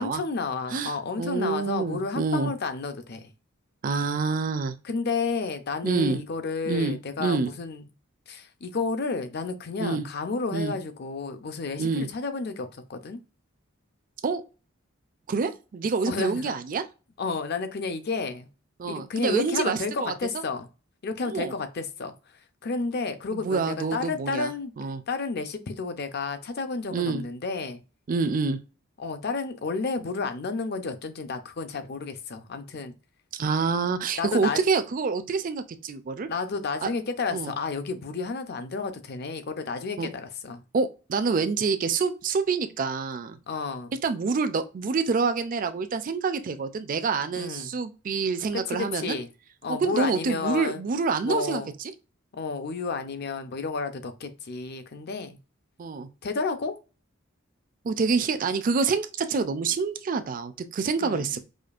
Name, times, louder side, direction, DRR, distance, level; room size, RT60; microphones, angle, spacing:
voice 1, 0.0-3.3 4.8-7.9 8.3-13.2 16.1-16.5 17.2-18.5 18.8-20.7 21.0-22.1 22.6-24.7 25.1-27.8 29.0-33.0 34.2-34.6 36.3-40.6 43.5-43.9 47.3-47.7 48.5-49.3 49.6-50.8 51.2-51.7 52.3-55.4 56.2-56.8 61.0-61.3, left 4 dB, 50° left, 0.5 m, -31 dB
voice 2, 0.7-2.5 3.8-4.7 5.8-6.2 6.7-7.5 9.8-10.0 10.5-10.7 11.8-12.1 14.2-14.4 15.3-16.8 18.8-20.1 21.2-21.5 23.3-24.5 24.8-25.0 26.9-27.2 28.1-28.6 33.3-36.3 36.8-36.9 37.3-37.5 40.0-40.1 40.7-43.4 44.0-49.2 49.7-51.6 55.8-56.1 57.8-61.5, right 4 dB, 40° right, 0.4 m, -27 dB
5.0 x 2.3 x 2.4 m
head